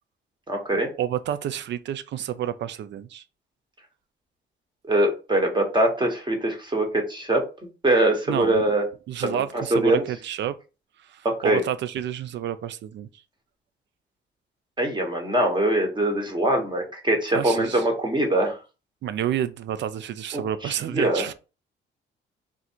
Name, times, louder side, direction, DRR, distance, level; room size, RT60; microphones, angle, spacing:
voice 1, 0.5-0.9 4.9-7.5 7.8-8.8 9.2-10.0 11.2-11.6 14.8-18.6 20.3-21.2, right 1 dB, 25° right, 1.3 m, -23 dB
voice 2, 1.0-3.2 8.3-8.6 9.1-10.6 11.0-13.1 17.3-17.8 19.0-21.3, right 10 dB, 65° right, 0.5 m, -29 dB
3.7 x 2.5 x 4.4 m
cardioid pair, 90°, 20 cm